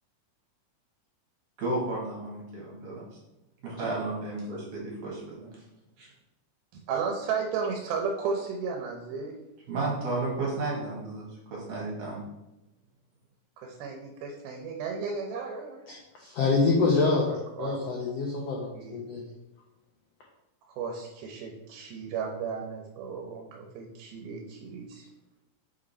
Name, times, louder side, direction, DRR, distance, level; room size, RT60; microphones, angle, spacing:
voice 1, 1.6-2.9 3.6-5.5 9.7-12.2, right 2 dB, 60° right, -4 dB, 2.9 m, -33 dB
voice 2, 6.9-9.3 13.6-15.8 17.1-17.8 18.7-19.0 20.7-25.1, right 5 dB, 85° right, 2 dB, 2.7 m, -34 dB
voice 3, 15.9-17.2 17.6-19.2, left 3 dB, 90° left, -2 dB, 1.4 m, -26 dB
6.1 x 5.2 x 4.2 m, 0.92 s
omnidirectional pair, 4.2 m